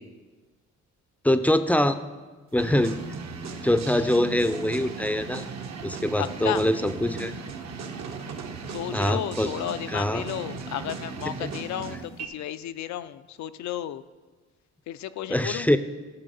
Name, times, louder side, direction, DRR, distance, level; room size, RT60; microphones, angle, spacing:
voice 1, 1.2-2.0 2.5-3.0 3.6-5.4 5.8-7.3 8.9-9.5 9.9-10.2 11.4-11.6 15.3-15.8, left 1 dB, 5° left, 11 dB, 0.5 m, -24 dB
sound 1, 2.6-12.3, right 5 dB, 60° right, 1.2 m, -37 dB
voice 2, 6.2-6.6 8.7-14.0 14.9-15.7, left 11 dB, 65° left, 13 dB, 0.5 m, -33 dB
13.5 x 5.6 x 5.4 m, 1.3 s
cardioid pair, 90°, 30 cm